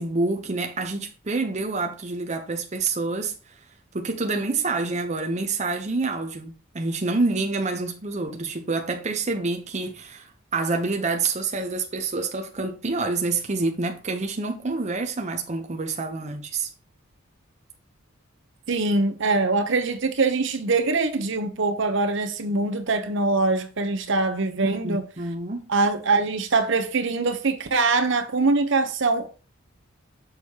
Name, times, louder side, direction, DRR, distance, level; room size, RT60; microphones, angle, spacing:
voice 1, 0.0-3.3 3.9-16.7 24.6-25.7, right 3 dB, 35° right, 0.7 m, -27 dB
voice 2, 18.7-25.0 25.7-29.3, right 3 dB, 60° right, 0.9 m, -23 dB
6.4 x 6.3 x 2.9 m
head